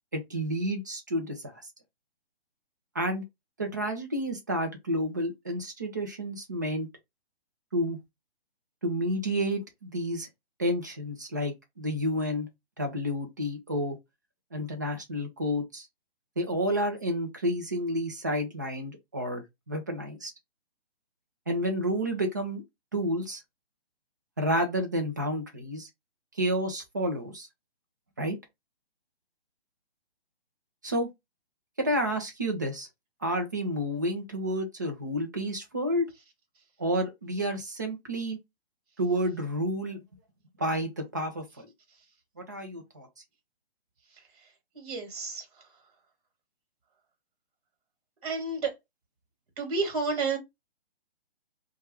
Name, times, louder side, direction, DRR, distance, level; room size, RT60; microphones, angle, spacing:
voice 1, 0.1-1.6 2.9-3.2 3.6-6.9 7.7-8.0 8.8-10.3 10.6-12.5 12.8-14.0 14.5-15.9 16.4-20.3 21.5-22.6 22.9-23.4 24.4-25.9 26.3-27.5 28.2-28.4 30.8-31.1 31.8-32.9 33.2-36.1 36.8-38.4 39.0-40.0 40.6-41.7 42.4-43.1, equal, 20° right, 0.4 m, -30 dB
voice 2, 44.7-45.4 48.2-48.7 49.6-50.4, right 4 dB, 35° right, 1.4 m, -30 dB
2.7 x 2.3 x 3.1 m
hypercardioid pair, 160°, 32 cm